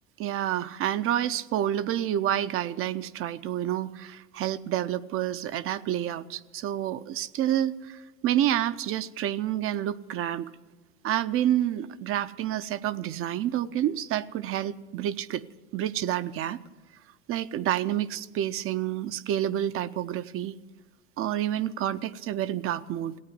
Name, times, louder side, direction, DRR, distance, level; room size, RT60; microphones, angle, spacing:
voice 1, 0.2-10.5 11.0-15.4 15.7-16.6 17.3-20.6 21.2-23.2, right 11 dB, 35° right, 14 dB, 0.6 m, -29 dB
16.0 x 8.8 x 9.4 m, 1.3 s
supercardioid pair, 115°, 36 cm